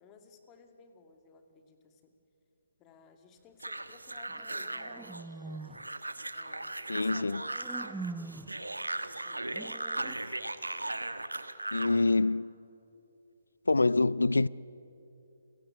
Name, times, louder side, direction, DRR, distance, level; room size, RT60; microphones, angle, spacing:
voice 1, 0.0-2.1 2.8-5.7 6.3-7.8 8.5-9.5, left 5 dB, 20° left, 2.4 m, -58 dB
sound 1, 3.6-12.0, right 2 dB, 90° right, 1.3 m, -38 dB
sound 2, 4.3-5.9 7.1-8.6 9.5-10.2, right 3 dB, 5° right, 0.5 m, -43 dB
voice 2, 6.9-7.4 11.7-12.5 13.7-14.5, left 3 dB, 80° left, 0.5 m, -26 dB
30.0 x 17.0 x 8.9 m
figure-of-eight pair, 135°, 0 cm